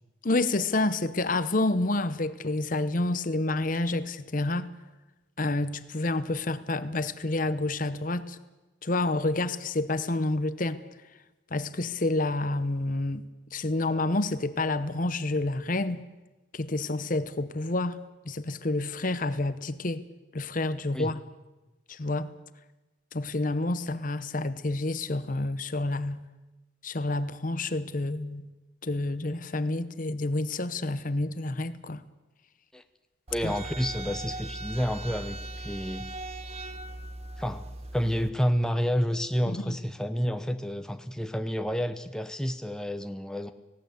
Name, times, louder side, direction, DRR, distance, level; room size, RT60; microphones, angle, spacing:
voice 1, 0.2-4.7 5.4-8.4 8.8-10.8 11.5-13.2 13.5-16.0 16.5-18.0 18.2-20.0 20.3-21.2 21.9-22.3 23.1-26.2 26.8-28.5 28.8-32.0 33.4-33.5 39.5-39.8, left 2 dB, 45° left, 0.9 m, -29 dB
voice 2, 33.3-36.1 37.4-37.7 37.9-43.5, equal, 5° left, 0.7 m, -29 dB
sound 1, 33.3-38.3, right 2 dB, 35° right, 1.1 m, -39 dB
19.0 x 17.5 x 8.2 m
head